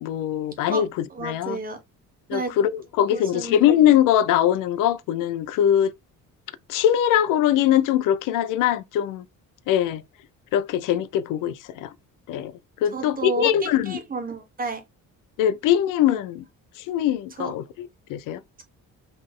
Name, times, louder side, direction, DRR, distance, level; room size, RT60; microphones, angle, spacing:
voice 1, 0.0-1.6 2.3-5.9 6.7-9.2 9.7-10.0 10.5-11.9 12.3-12.5 12.8-14.0 15.4-16.4 16.8-18.4, left 11 dB, 80° left, 0.5 m, -22 dB
voice 2, 1.1-1.8 2.3-2.5 3.1-3.6 12.9-14.8 17.4-17.5, right 4 dB, 25° right, 1.3 m, -31 dB
4.0 x 3.2 x 3.6 m
cardioid pair, 150°, 31 cm